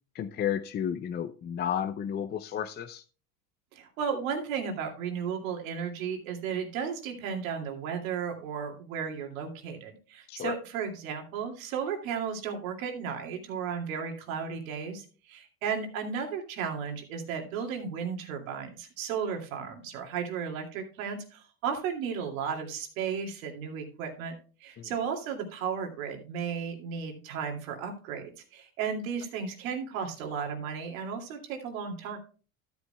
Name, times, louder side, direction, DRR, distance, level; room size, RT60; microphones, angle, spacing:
voice 1, 0.1-3.0 10.3-10.5 24.8-24.9, left 9 dB, 25° left, 9 dB, 0.5 m, -32 dB
voice 2, 3.7-24.3 24.6-32.2, right 6 dB, 85° right, 3 dB, 2.5 m, -34 dB
13.0 x 9.4 x 2.2 m, 0.37 s
supercardioid pair, 110°, 40 cm